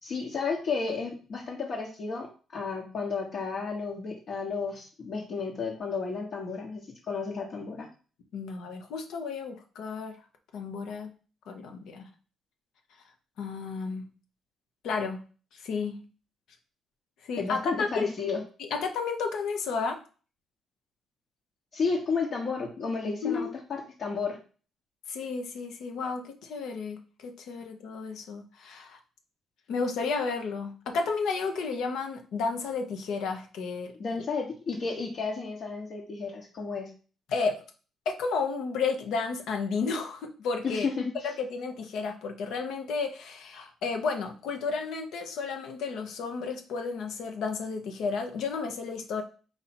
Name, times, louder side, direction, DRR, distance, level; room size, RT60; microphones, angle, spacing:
voice 1, 0.0-2.3 2.5-7.9 17.4-18.4 21.7-24.4 34.0-36.9 40.6-41.3, left 4 dB, 60° left, -4 dB, 1.1 m, -32 dB
voice 2, 8.3-10.1 10.5-11.1 11.5-12.1 13.4-14.1 14.8-15.2 15.5-16.0 17.2-18.1 18.7-20.0 23.2-23.5 25.1-29.0 29.7-33.9 34.2-34.3 37.3-37.5 38.1-40.9 41.2-49.2, left 4 dB, 80° left, 4 dB, 0.8 m, -32 dB
4.3 x 2.7 x 4.3 m, 0.37 s
cardioid pair, 90°, 0 cm